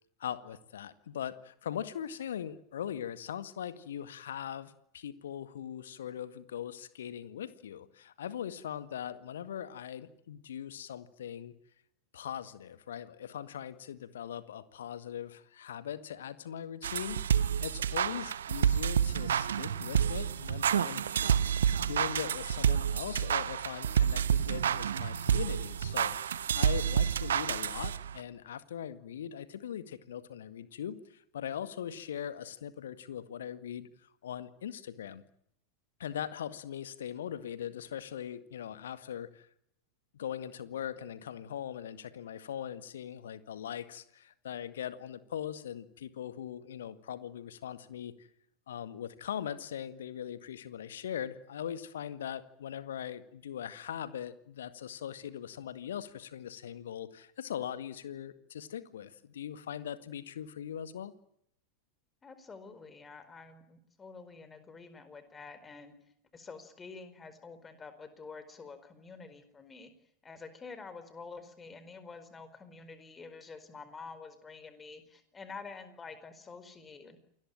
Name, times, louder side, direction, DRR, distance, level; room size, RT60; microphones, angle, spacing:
voice 1, 0.2-11.5 12.1-21.0 21.8-35.2 36.0-39.5 40.1-48.3 48.7-61.1, left 9 dB, 60° left, 13 dB, 1.9 m, -40 dB
Hip hop beats vinyl, 16.8-28.2, right 8 dB, 65° right, 1.1 m, -29 dB
voice 2, 62.2-65.9 66.3-69.9 70.2-77.2, left 4 dB, 15° left, 12 dB, 4.6 m, -48 dB
28.5 x 20.5 x 9.0 m, 0.73 s
figure-of-eight pair, 90°, 0 cm